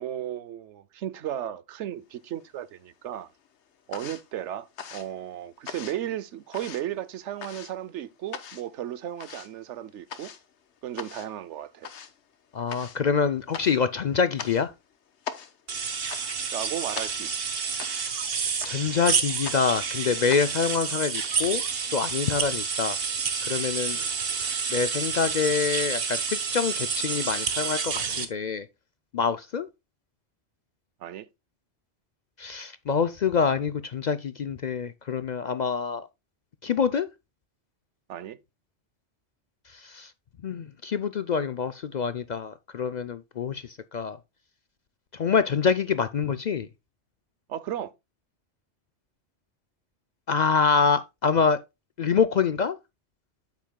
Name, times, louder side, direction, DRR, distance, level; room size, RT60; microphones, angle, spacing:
voice 1, 0.0-3.3 3.9-10.3 10.8-11.9 16.5-17.6 23.9-24.1 31.0-31.3 38.1-38.4 47.5-47.9, right 11 dB, 90° right, 1.0 m, -35 dB
sound 1, 2.1-2.9 3.2-21.5, left 7 dB, 75° left, 1.2 m, -42 dB
voice 2, 12.5-14.7 18.4-21.6 21.9-23.0 23.4-24.0 24.7-28.7 29.1-29.7 32.4-36.1 36.6-37.1 39.7-40.1 40.4-44.2 45.1-46.7 50.3-51.6 52.0-52.8, left 6 dB, 55° left, 0.5 m, -26 dB
sound 2, 15.7-28.3, right 6 dB, 55° right, 1.2 m, -29 dB
8.6 x 8.2 x 2.2 m
omnidirectional pair, 1.2 m